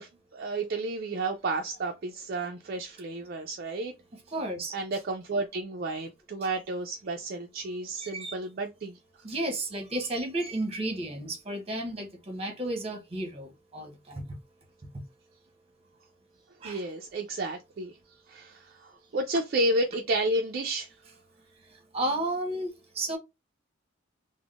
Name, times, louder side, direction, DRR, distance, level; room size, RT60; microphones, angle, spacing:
voice 1, 0.0-3.9 4.7-9.0 16.6-18.0 18.3-20.9, right 2 dB, 45° right, 0.4 m, -31 dB
voice 2, 4.3-4.7 8.0-8.3 9.2-14.3 16.6-16.9 21.9-23.2, right 1 dB, 30° right, 0.9 m, -33 dB
3.5 x 2.1 x 2.3 m
head